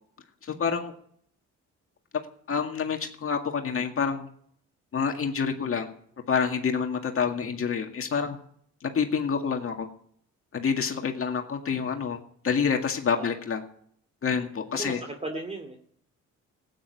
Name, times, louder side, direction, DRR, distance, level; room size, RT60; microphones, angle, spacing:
voice 1, 0.4-0.9 2.5-4.3 4.9-5.9 6.3-8.4 8.8-9.9 10.5-12.2 12.4-13.6 14.2-15.0, left 6 dB, 45° left, 3 dB, 2.1 m, -27 dB
voice 2, 14.7-15.8, right 2 dB, 20° right, 3 dB, 2.3 m, -36 dB
15.5 x 9.9 x 8.3 m, 0.64 s
cardioid pair, 90°, 30 cm